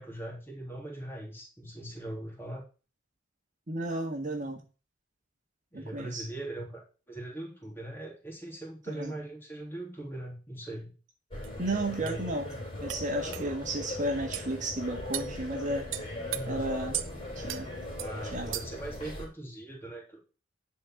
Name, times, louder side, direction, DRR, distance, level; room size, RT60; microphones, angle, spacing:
voice 1, 0.0-2.6 5.7-10.9 11.8-12.6 13.2-13.5 16.3-16.7 18.0-20.2, right 1 dB, 10° left, -1 dB, 3.3 m, -41 dB
voice 2, 3.7-4.6 5.7-6.3 8.9-9.1 11.6-12.5 12.8-15.9 16.5-17.0 17.3-17.7 18.2-18.6, right 1 dB, 40° right, 3 dB, 1.6 m, -33 dB
sound 1, 11.3-19.3, left 1 dB, 30° left, 4.3 m, -39 dB
sound 2, 11.4-11.5 12.1-12.2 12.9-13.0 13.3-13.5 14.3-14.5 15.1-15.3 15.9-16.4 16.9-17.1 17.5-17.6 18.0-18.1 18.5-18.8, right 13 dB, 75° right, 0.8 m, -36 dB
11.0 x 4.5 x 7.7 m, 0.35 s
head